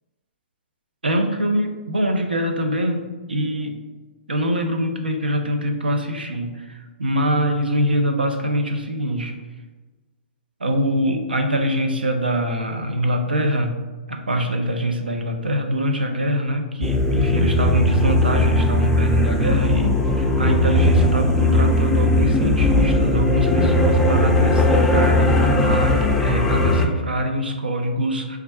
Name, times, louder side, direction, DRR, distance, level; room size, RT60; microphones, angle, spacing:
voice 1, 1.0-3.0 3.3-3.7 4.3-9.3 10.6-13.8 14.1-28.4, equal, 90° right, 4 dB, 0.5 m, -23 dB
sound 1, 16.8-26.9, left 1 dB, 5° left, 0.4 m, -18 dB
3.3 x 2.4 x 4.2 m, 1.3 s
hypercardioid pair, 120°, 5 cm